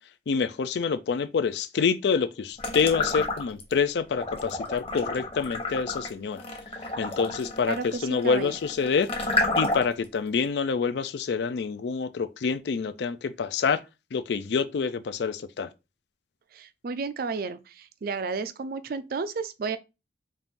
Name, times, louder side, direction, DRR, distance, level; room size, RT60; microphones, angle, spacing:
voice 1, 0.3-6.4 7.0-7.8 8.0-9.1 9.6-13.8 14.1-15.7, left 5 dB, 65° left, 0.4 m, -27 dB
sound 1, 2.6-3.7 4.1-10.0, left 2 dB, 35° left, 1.0 m, -30 dB
voice 2, 7.7-8.6 16.5-19.8, right 4 dB, 55° right, 0.4 m, -32 dB
4.2 x 2.5 x 3.6 m
head